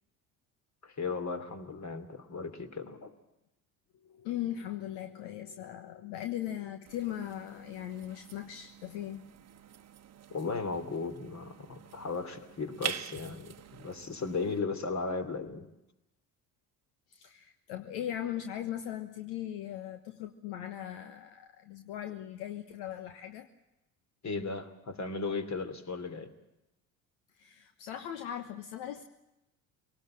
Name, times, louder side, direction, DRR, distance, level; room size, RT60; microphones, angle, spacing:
voice 1, 0.8-3.1 10.3-15.7 24.2-26.3, left 4 dB, 40° left, 8 dB, 3.0 m, -36 dB
voice 2, 4.0-9.3 17.1-23.5 27.4-29.0, left 11 dB, 65° left, 7 dB, 1.3 m, -39 dB
sound 1, 6.9-14.6, right 9 dB, 35° right, 1.1 m, -45 dB
24.5 x 18.5 x 7.6 m, 0.94 s
hypercardioid pair, 55°, 44 cm